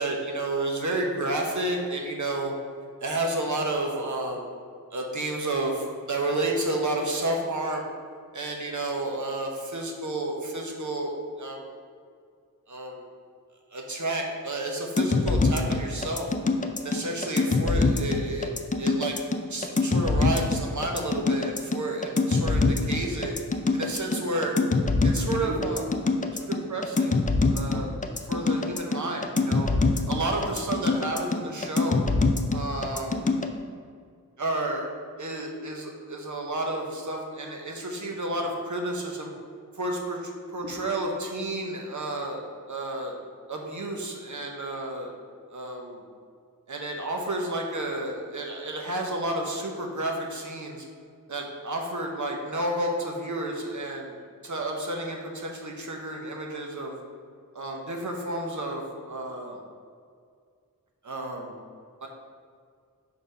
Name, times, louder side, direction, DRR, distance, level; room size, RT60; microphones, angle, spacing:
voice 1, 0.0-2.5 3.0-4.5 4.9-7.9 8.3-11.1 11.4-11.7 12.7-13.0 13.7-16.3 16.8-18.5 18.8-19.2 19.5-23.3 23.7-24.6 25.0-25.9 26.3-28.0 28.3-32.1 32.5-33.3 34.4-34.9 35.2-39.3 39.8-42.4 42.7-43.2 43.5-45.1 45.5-46.0 46.7-50.8 51.3-54.1 54.4-57.0 57.5-59.6 61.0-61.5 62.0-62.1, right 2 dB, 60° right, 1 dB, 1.0 m, -31 dB
sound 1, 15.0-33.5, left 3 dB, 25° left, 0.4 m, -24 dB
4.8 x 4.1 x 5.5 m, 2.2 s
wide cardioid pair, 65°, 33 cm